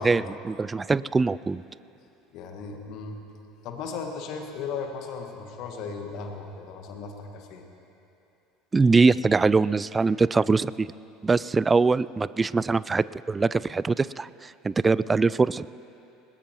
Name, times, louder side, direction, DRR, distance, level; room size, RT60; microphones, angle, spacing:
voice 1, 0.0-1.6 8.7-10.9 11.2-15.7, right 4 dB, 20° right, 19 dB, 0.3 m, -23 dB
voice 2, 2.3-3.2 3.6-7.6, left 5 dB, 55° left, 3 dB, 1.8 m, -36 dB
21.0 x 19.0 x 3.1 m, 2.8 s
figure-of-eight pair, 70°, 0 cm